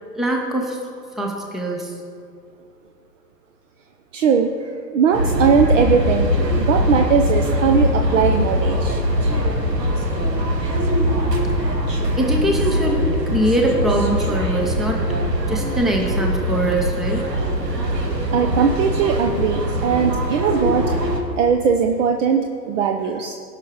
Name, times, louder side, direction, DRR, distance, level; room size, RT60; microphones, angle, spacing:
voice 1, 0.2-0.8 1.2-1.9 12.2-15.0 15.5-17.3, right 1 dB, ahead, 0 dB, 0.6 m, -22 dB
voice 2, 4.1-6.3 6.5-9.0 18.3-20.9 21.4-23.3, right 6 dB, 50° right, 4 dB, 0.8 m, -19 dB
sound 1, 5.1-21.2, equal, 75° right, 1.9 m, -21 dB
17.5 x 5.9 x 5.0 m, 2.4 s
figure-of-eight pair, 110°, 49 cm